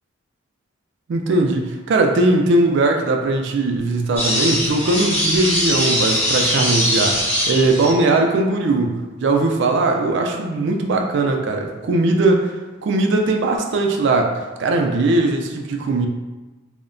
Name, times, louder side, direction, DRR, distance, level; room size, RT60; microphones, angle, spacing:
voice 1, 1.1-12.5 12.8-16.1, right 2 dB, 55° right, 2 dB, 0.3 m, -19 dB
sound 1, 4.2-8.2, equal, 10° left, 0.6 m, -21 dB
2.7 x 2.1 x 2.5 m, 1.2 s
head